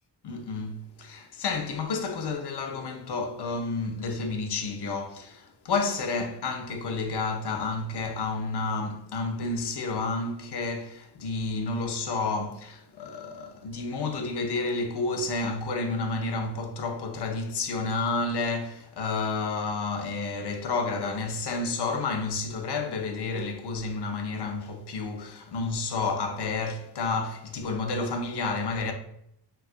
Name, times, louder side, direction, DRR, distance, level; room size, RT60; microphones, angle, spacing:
voice 1, 0.2-28.9, left 3 dB, 65° left, 0.5 m, -30 dB
3.6 x 2.3 x 2.4 m
wide cardioid pair, 80°, 44 cm